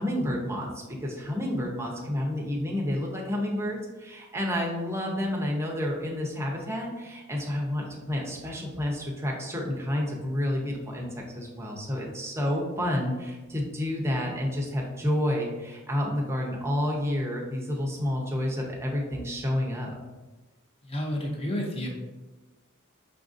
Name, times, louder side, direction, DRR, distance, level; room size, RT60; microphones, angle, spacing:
voice 1, 0.0-19.9, left 1 dB, 10° right, -1 dB, 0.6 m, -30 dB
voice 2, 20.8-21.9, left 1 dB, 25° left, 0 dB, 0.6 m, -30 dB
5.5 x 2.5 x 2.5 m, 1.2 s
head